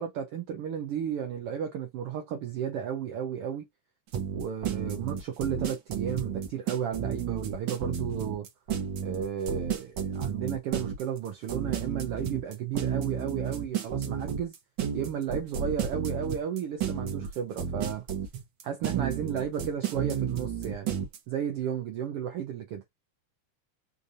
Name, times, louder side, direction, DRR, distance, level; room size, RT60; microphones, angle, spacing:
voice 1, 0.0-3.7 4.3-8.5 9.0-14.5 14.9-18.0 18.6-20.9 21.3-22.8, right 8 dB, 85° right, 1.3 m, -33 dB
sound 1, 4.1-21.2, right 7 dB, 55° right, 1.4 m, -32 dB
5.2 x 2.6 x 2.6 m
omnidirectional pair, 3.5 m